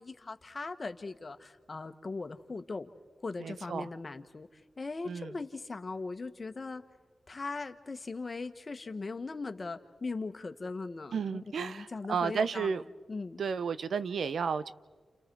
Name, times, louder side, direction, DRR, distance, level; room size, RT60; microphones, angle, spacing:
voice 1, 0.0-2.9 3.2-6.8 7.3-12.7 13.1-13.4, left 3 dB, 45° left, 8 dB, 1.6 m, -39 dB
voice 2, 3.4-3.9 5.1-5.3 11.1-12.8 13.4-14.7, right 6 dB, 80° right, 14 dB, 0.7 m, -32 dB
30.0 x 30.0 x 4.8 m, 1.4 s
cardioid pair, 45°, 0 cm